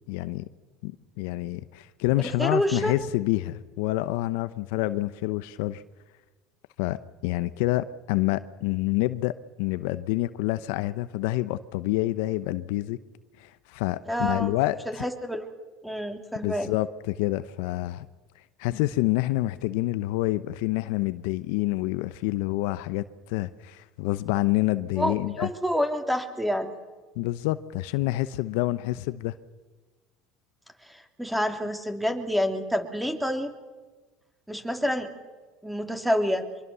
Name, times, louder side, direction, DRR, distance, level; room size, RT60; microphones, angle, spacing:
voice 1, 0.1-0.5 0.8-0.9 1.2-5.8 6.8-7.0 7.2-9.3 9.6-13.0 13.4-14.8 16.4-18.1 18.6-25.5 27.2-29.3, left 17 dB, 75° left, 0.8 m, -27 dB
voice 2, 2.2-3.0 14.1-14.5 14.9-15.5 15.8-16.7 25.0-26.7 30.8-33.5 34.5-35.1 35.6-36.5, equal, 5° right, 3.2 m, -28 dB
25.0 x 23.0 x 6.9 m
supercardioid pair, 95°, 0 cm